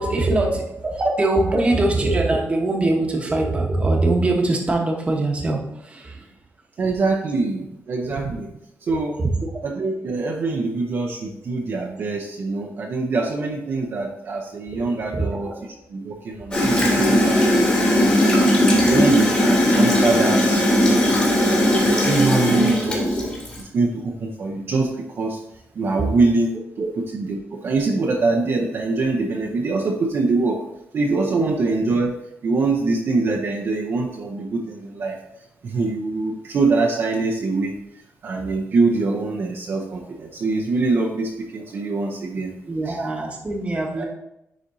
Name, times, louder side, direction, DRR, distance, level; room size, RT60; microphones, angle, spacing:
voice 1, 0.0-6.3 8.9-9.5 14.7-14.8 15.1-15.5 26.8-26.9 31.4-31.5 42.7-44.0, right 2 dB, 25° right, 1 dB, 1.1 m, -22 dB
voice 2, 6.8-8.5 8.8-9.2 9.6-15.5 15.9-23.2 23.6-25.4 25.7-26.6 27.2-30.6 30.9-32.1 32.4-35.2 35.6-37.8 38.2-42.5 42.9-43.0 43.9-44.0, right 3 dB, 50° right, -1 dB, 0.7 m, -24 dB
Gurgling / Toilet flush, 16.5-23.6, left 1 dB, 25° left, 2.1 m, -18 dB
10.0 x 4.2 x 2.7 m, 0.83 s
wide cardioid pair, 145°, 5 cm